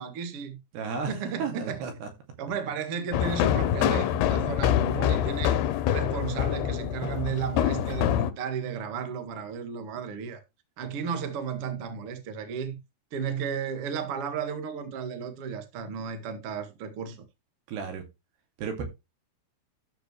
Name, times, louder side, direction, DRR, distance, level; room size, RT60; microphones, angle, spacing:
voice 1, 0.0-0.6 1.1-1.9 2.4-5.6 5.9-10.4 10.8-12.8 13.1-17.2, right 7 dB, 45° right, 2.1 m, -34 dB
voice 2, 0.7-1.1 1.4-2.1 17.7-18.0 18.6-18.8, right 5 dB, 75° right, 4.6 m, -32 dB
sound 1, 3.1-8.3, left 11 dB, 80° left, 2.8 m, -25 dB
13.5 x 6.2 x 3.2 m
omnidirectional pair, 4.8 m